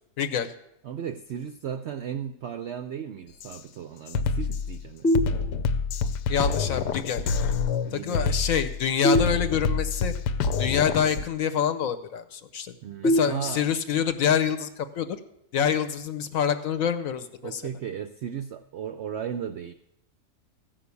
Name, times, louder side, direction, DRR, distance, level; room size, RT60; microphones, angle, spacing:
voice 1, 0.2-0.5 6.3-7.3 7.9-10.1 10.6-12.7 13.0-15.1 15.5-17.6, left 8 dB, 65° left, 11 dB, 1.0 m, -26 dB
voice 2, 0.8-5.2 7.8-8.5 12.8-13.7 17.4-19.7, right 8 dB, 75° right, 9 dB, 0.6 m, -35 dB
Drum kit, 3.4-3.6 4.1-11.3, left 5 dB, 85° left, 1.2 m, -27 dB
sound 1, 5.0-6.0 9.0-10.0 13.0-14.0, left 1 dB, ahead, 0.7 m, -26 dB
14.5 x 5.8 x 8.3 m, 0.80 s
omnidirectional pair, 1.7 m